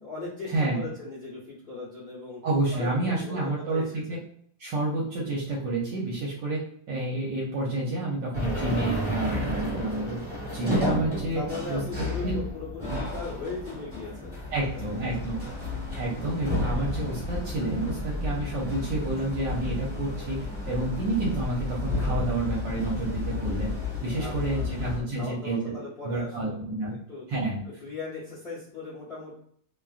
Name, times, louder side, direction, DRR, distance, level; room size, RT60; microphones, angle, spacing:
voice 1, 0.0-2.4 2.7-4.2 11.3-15.0 24.2-26.6 27.1-27.2 27.8-29.3, left 3 dB, 50° left, -8 dB, 0.7 m, -38 dB
voice 2, 0.5-0.8 2.4-4.2 4.6-6.6 6.9-10.2 10.5-11.4 11.7-12.3 12.9-13.0 14.5-15.3 16.0-23.7 24.0-25.7 26.0-27.0 27.3-27.6, right 2 dB, 70° right, -5 dB, 1.3 m, -29 dB
sound 1, 8.3-25.0, left 2 dB, 10° right, 0.9 m, -32 dB
3.2 x 2.4 x 2.3 m, 0.63 s
omnidirectional pair, 2.2 m